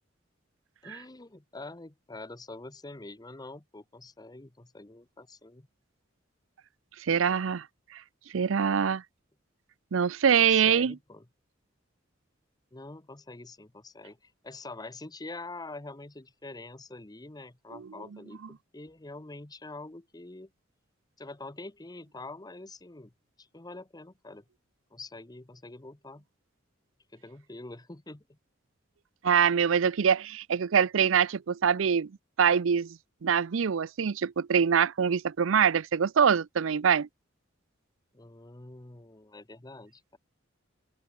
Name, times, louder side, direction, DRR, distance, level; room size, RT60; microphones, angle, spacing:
voice 1, 0.8-5.7 10.4-11.3 12.7-20.5 21.2-23.1 23.4-24.4 24.9-26.2 27.1-28.4 38.1-40.2, left 2 dB, 20° left, 1.0 m, -45 dB
voice 2, 7.1-7.6 8.3-9.0 9.9-11.0 29.2-32.1 32.4-37.1, right 7 dB, 75° right, 0.5 m, -24 dB
head